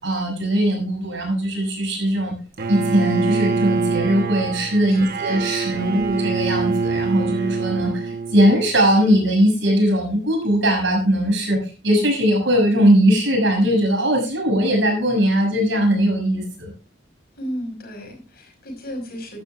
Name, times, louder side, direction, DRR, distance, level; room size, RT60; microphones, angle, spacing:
voice 1, 0.0-2.3 2.7-11.6 11.8-16.7, equal, 70° right, 2 dB, 6.4 m, -19 dB
Bowed string instrument, 2.6-8.7, right 4 dB, 55° right, 1.0 m, -25 dB
voice 2, 4.9-6.0 17.4-19.4, equal, 55° left, 2 dB, 5.3 m, -35 dB
15.5 x 12.0 x 2.4 m, 0.34 s
head